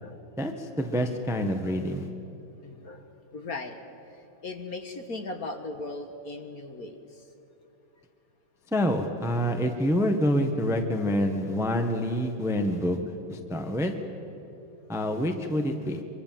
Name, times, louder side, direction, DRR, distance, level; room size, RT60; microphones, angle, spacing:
voice 1, 0.4-2.1 8.7-13.0 13.3-13.9 14.9-16.0, equal, ahead, 5 dB, 1.2 m, -27 dB
voice 2, 2.6-3.1 3.3-3.8 4.4-7.2, left 3 dB, 45° left, 5 dB, 1.9 m, -38 dB
25.0 x 25.0 x 7.7 m, 2.9 s
omnidirectional pair, 2.4 m